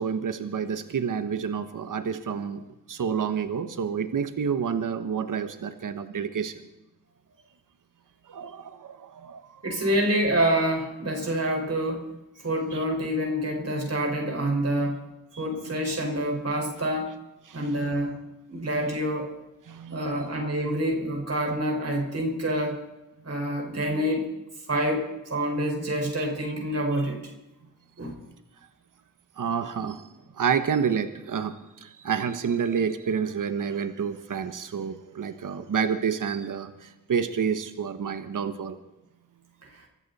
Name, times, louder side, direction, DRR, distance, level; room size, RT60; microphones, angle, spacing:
voice 1, 0.0-6.6 8.3-9.6 12.7-12.8 15.3-15.7 17.5-17.9 18.6-18.7 19.7-20.3 26.2-26.3 29.4-30.0 30.3-38.8, right 7 dB, 80° right, 10 dB, 1.1 m, -29 dB
voice 2, 9.6-12.1 12.4-15.0 15.4-17.1 17.5-18.2 18.5-19.3 19.9-22.8 23.2-24.3 24.7-27.2 28.0-28.1, right 1 dB, 50° right, 1 dB, 5.0 m, -27 dB
25.0 x 13.5 x 4.1 m, 0.96 s
cardioid pair, 65°, 32 cm